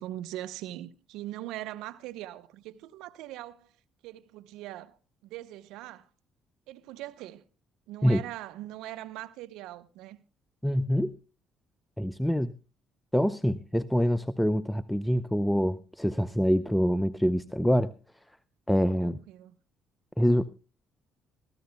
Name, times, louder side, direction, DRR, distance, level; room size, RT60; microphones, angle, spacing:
voice 1, 0.0-3.7 4.0-6.1 6.7-7.4 7.9-10.2 19.0-19.5, right 14 dB, 75° right, 0.8 m, -41 dB
voice 2, 10.6-11.1 12.0-12.5 13.1-17.9 18.7-19.2 20.2-20.4, equal, 5° left, 0.5 m, -25 dB
23.0 x 14.5 x 2.2 m
hypercardioid pair, 60°, 0 cm